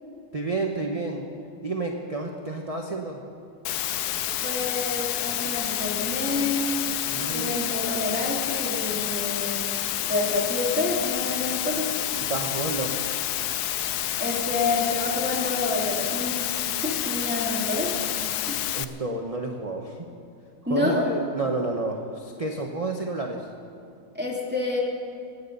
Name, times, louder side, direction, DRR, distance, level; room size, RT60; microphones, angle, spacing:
voice 1, 0.3-1.3 1.6-3.2 7.1-7.5 12.3-13.0 18.7-20.1 20.7-23.5, right 3 dB, 25° right, 1 dB, 0.8 m, -30 dB
Water, 3.6-18.8, left 12 dB, 70° left, 1.0 m, -29 dB
voice 2, 4.4-6.7 7.3-9.6 10.1-11.9 14.2-18.0 18.5-18.6 20.7-21.1 24.1-24.8, left 2 dB, 5° right, -4 dB, 2.5 m, -28 dB
24.0 x 9.8 x 5.5 m, 2.4 s
omnidirectional pair, 1.9 m